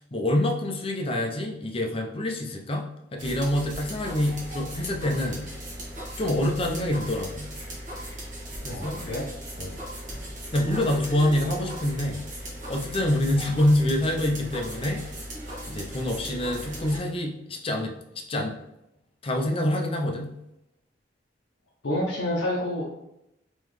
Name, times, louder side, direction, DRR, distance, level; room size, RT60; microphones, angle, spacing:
voice 1, 0.1-5.5 6.2-7.5 8.6-9.0 9.6-9.7 10.5-12.2 12.7-15.0 15.7-17.9 18.3-18.5 19.2-20.3, left 1 dB, 30° left, 2 dB, 0.5 m, -26 dB
sound 1, 3.2-17.0, equal, 45° right, 1.2 m, -38 dB
voice 2, 8.7-9.3 21.8-22.9, left 1 dB, 70° left, -5 dB, 0.7 m, -28 dB
3.7 x 3.0 x 3.2 m, 0.84 s
head